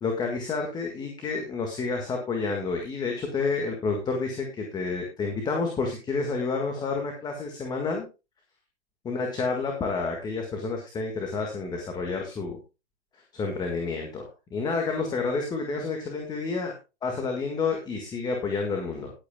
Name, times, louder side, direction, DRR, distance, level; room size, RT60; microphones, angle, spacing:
voice 1, 0.0-8.1 9.0-12.6 13.3-16.7 17.0-19.1, left 4 dB, 10° left, 2 dB, 1.7 m, -29 dB
19.0 x 8.5 x 2.3 m, 0.28 s
hypercardioid pair, 135°, 34 cm